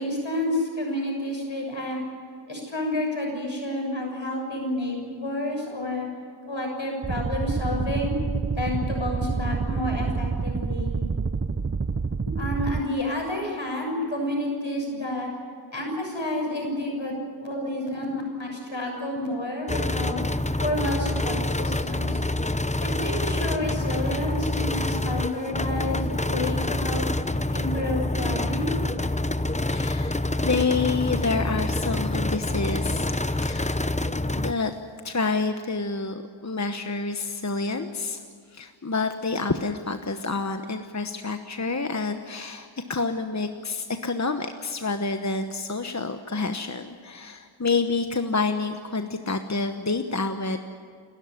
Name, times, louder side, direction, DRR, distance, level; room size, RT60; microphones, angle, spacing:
voice 1, 0.0-2.0 2.5-6.1 6.4-8.1 8.6-10.9 12.4-15.3 15.7-20.2 20.6-22.2 22.8-27.0 27.5-28.7, left 1 dB, 75° left, 1 dB, 6.7 m, -30 dB
sound 1, 7.0-12.8, right 4 dB, 30° right, 0.7 m, -28 dB
sound 2, 19.7-34.5, left 2 dB, 15° left, 0.7 m, -27 dB
voice 2, 29.7-34.0 34.3-34.7 35.0-38.2 38.5-50.6, left 4 dB, 35° left, 7 dB, 1.1 m, -28 dB
29.0 x 13.0 x 9.9 m, 2.1 s
wide cardioid pair, 45°, 46 cm